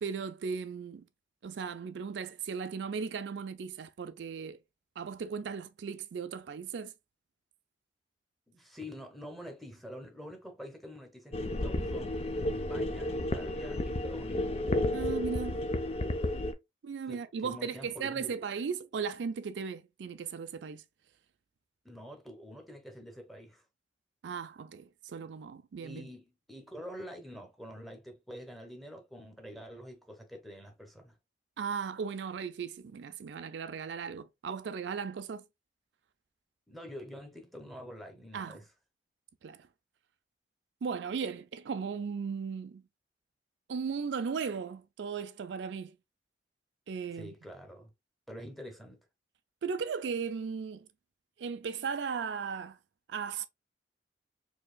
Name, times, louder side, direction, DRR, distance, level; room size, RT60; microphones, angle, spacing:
voice 1, 0.0-1.0 1.4-4.6 5.0-6.9 14.9-15.7 16.8-20.8 24.2-26.1 31.6-35.4 38.3-38.6 39.4-39.7 40.8-42.8 43.7-46.0 46.9-47.3 49.6-50.9 51.4-52.8 53.1-53.5, right 6 dB, 75° right, 0.4 m, -37 dB
voice 2, 8.5-14.5 17.1-18.3 21.8-23.6 25.8-31.1 36.7-38.7 47.1-47.9 48.3-49.0, equal, ahead, 0.9 m, -46 dB
sound 1, 11.3-16.5, left 1 dB, 35° left, 0.5 m, -32 dB
4.6 x 2.9 x 2.2 m
head